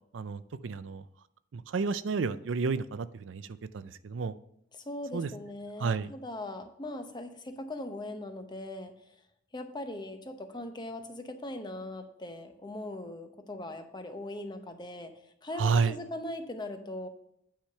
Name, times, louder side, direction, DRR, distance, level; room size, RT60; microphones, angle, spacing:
voice 1, 0.1-1.0 1.5-3.4 3.7-4.3 5.1-5.3 5.8-6.1 15.6-16.0, right 5 dB, 85° right, 14 dB, 0.4 m, -30 dB
voice 2, 4.7-8.9 9.5-15.1 15.4-17.1, left 1 dB, 25° left, 6 dB, 0.9 m, -40 dB
9.0 x 5.0 x 5.6 m, 0.74 s
head